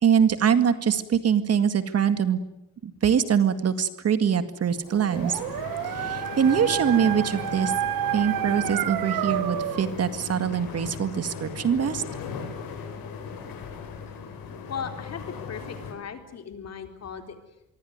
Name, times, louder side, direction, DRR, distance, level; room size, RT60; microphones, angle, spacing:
voice 1, 0.0-2.4 2.8-5.4 6.0-7.7 8.1-12.0, right 7 dB, 45° right, 11 dB, 2.0 m, -23 dB
Dog, 4.9-9.9, right 12 dB, 90° right, 1.1 m, -30 dB
sound 1, 5.1-15.9, left 6 dB, 90° left, 7.6 m, -37 dB
voice 2, 14.7-17.4, left 7 dB, 50° left, 6 dB, 4.0 m, -37 dB
25.5 x 23.5 x 9.4 m, 0.87 s
cardioid pair, 140°, 34 cm